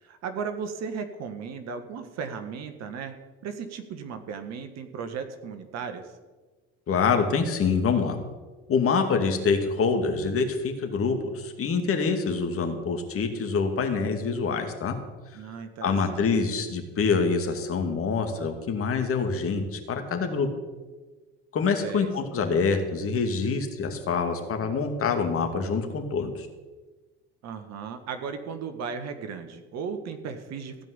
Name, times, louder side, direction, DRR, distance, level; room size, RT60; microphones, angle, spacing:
voice 1, 0.0-3.1 3.4-6.1 15.3-16.3 21.8-22.5 27.4-30.8, right 6 dB, 60° right, 8 dB, 1.7 m, -36 dB
voice 2, 6.9-8.2 8.7-14.9 15.8-20.5 21.5-26.5, left 5 dB, 45° left, 5 dB, 2.3 m, -26 dB
16.0 x 5.3 x 9.9 m, 1.3 s
hypercardioid pair, 70°, 30 cm